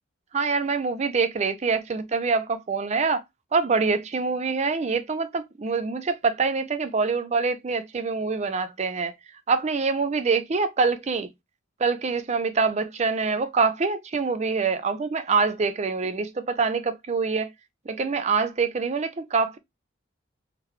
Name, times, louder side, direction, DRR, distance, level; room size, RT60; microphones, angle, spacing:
voice 1, 0.3-3.2 3.5-9.1 9.5-11.3 11.8-17.5 17.9-19.6, right 4 dB, 35° right, 0.4 m, -25 dB
3.7 x 3.3 x 3.0 m
head